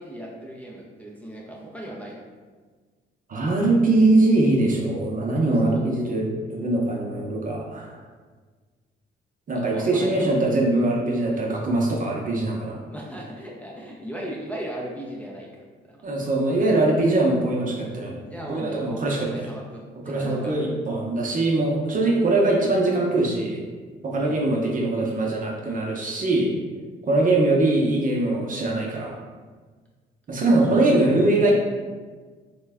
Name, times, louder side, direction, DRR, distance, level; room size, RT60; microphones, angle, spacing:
voice 1, 0.0-2.2 5.5-5.8 9.5-10.5 12.9-15.5 15.8-16.0 18.2-20.7 24.2-24.4, right 1 dB, 5° left, -4 dB, 0.5 m, -37 dB
voice 2, 3.3-7.9 9.5-12.8 16.0-18.2 18.5-19.5 20.1-23.6 24.0-26.5 27.0-29.1 30.3-31.5, right 2 dB, 45° right, -2 dB, 0.7 m, -22 dB
3.2 x 2.2 x 3.4 m, 1.5 s
cardioid pair, 90°, 20 cm